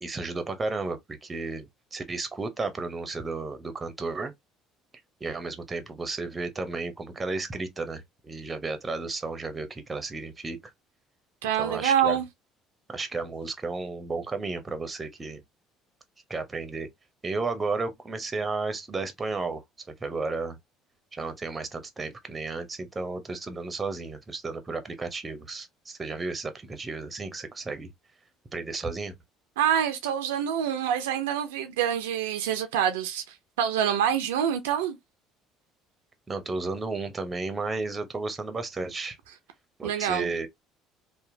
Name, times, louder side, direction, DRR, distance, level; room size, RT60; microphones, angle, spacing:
voice 1, 0.0-4.3 5.2-10.7 11.6-12.2 12.9-15.4 16.3-16.9 17.2-20.6 21.1-27.9 28.5-29.1 36.3-39.2 39.8-40.5, right 3 dB, 25° right, 0.7 m, -33 dB
voice 2, 11.4-12.2 29.6-33.2 33.6-35.0 39.8-40.3, right 9 dB, 85° right, 0.4 m, -26 dB
2.8 x 2.2 x 2.6 m
hypercardioid pair, 65°, 0 cm